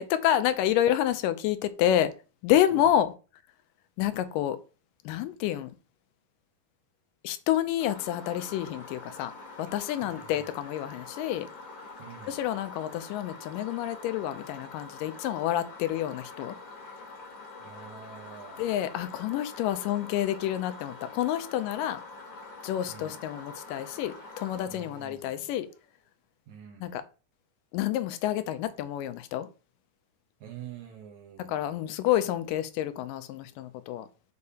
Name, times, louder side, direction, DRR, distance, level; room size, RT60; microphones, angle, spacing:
voice 1, 0.0-2.1 2.4-3.1 4.0-4.6 5.1-5.7 7.2-9.3 9.6-11.5 12.2-16.6 18.6-22.0 22.6-25.7 26.8-27.0 27.7-29.5 31.4-34.1, left 12 dB, 80° left, 2.1 m, -28 dB
sound 1, 7.8-25.8, left 3 dB, 45° left, 1.8 m, -46 dB
voice 2, 10.0-10.5 12.0-12.4 17.6-18.8 22.9-23.2 24.7-25.5 26.5-27.0 30.4-31.9, right 9 dB, 70° right, 2.0 m, -47 dB
6.6 x 5.2 x 2.8 m
omnidirectional pair, 3.9 m